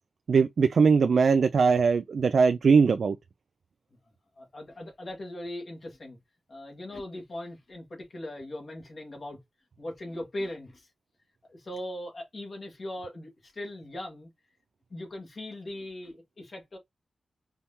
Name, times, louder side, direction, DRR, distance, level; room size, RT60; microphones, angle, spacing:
voice 1, 0.3-3.2, right 5 dB, 65° right, 0.3 m, -21 dB
voice 2, 4.4-6.2 6.5-9.4 9.8-10.9 11.5-14.3 14.9-16.8, left 1 dB, 45° left, 1.7 m, -39 dB
4.4 x 3.5 x 2.8 m
wide cardioid pair, 175°, 0 cm